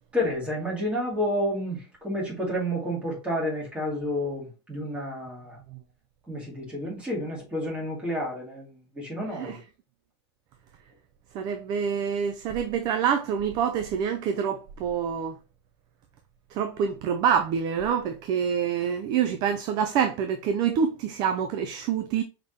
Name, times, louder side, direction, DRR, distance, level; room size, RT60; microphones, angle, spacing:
voice 1, 0.1-5.6 6.3-8.7 9.0-9.6, equal, 10° right, 2.0 m, -30 dB
voice 2, 9.3-9.6 11.3-15.4 16.5-22.2, right 7 dB, 30° right, 0.3 m, -26 dB
5.0 x 3.5 x 2.7 m
supercardioid pair, 165°, 14 cm